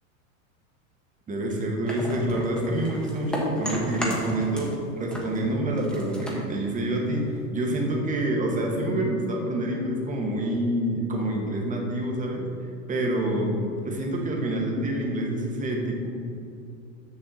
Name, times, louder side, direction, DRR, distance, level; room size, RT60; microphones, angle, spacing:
voice 1, 1.3-12.5 12.9-16.1, right 1 dB, 20° right, -1 dB, 1.4 m, -27 dB
sound 1, 1.9-4.8 5.1-7.5, equal, ahead, 1.2 m, -33 dB
6.6 x 6.5 x 4.2 m, 2.6 s
hypercardioid pair, 120°, 41 cm